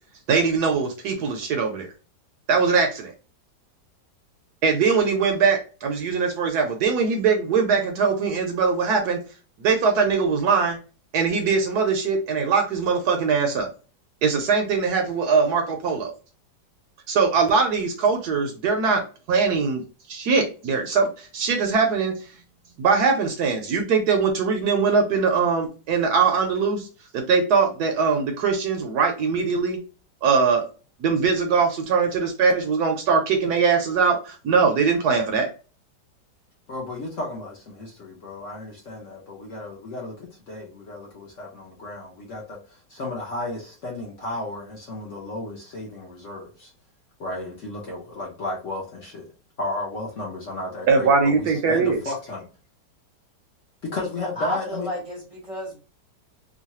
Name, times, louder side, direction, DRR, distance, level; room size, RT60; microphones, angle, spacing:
voice 1, 0.3-1.9 2.5-3.1 4.6-9.2 9.6-10.8 11.1-13.7 14.2-16.1 17.1-19.0 19.3-19.8 20.1-22.1 22.8-26.9 27.1-29.8 30.2-30.6 31.0-35.5 50.9-52.0, right 5 dB, 70° right, 1.1 m, -21 dB
voice 2, 36.7-46.7 47.2-49.3 49.6-52.4 53.8-54.9, left 2 dB, 55° left, 0.9 m, -34 dB
voice 3, 54.0-55.8, equal, 30° right, 0.7 m, -32 dB
3.1 x 2.2 x 2.8 m
omnidirectional pair, 1.9 m